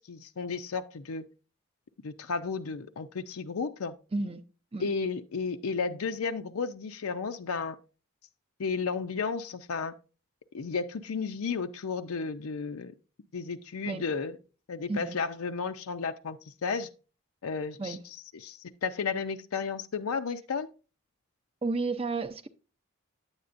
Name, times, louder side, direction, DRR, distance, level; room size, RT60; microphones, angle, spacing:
voice 1, 0.1-1.2 2.0-3.9 4.8-7.8 8.6-9.9 10.5-12.9 13.3-14.4 14.7-16.9 17.4-18.0 18.3-20.7, left 5 dB, 90° left, 0.5 m, -33 dB
voice 2, 21.6-22.5, right 3 dB, 25° right, 0.5 m, -32 dB
9.5 x 8.1 x 2.5 m
head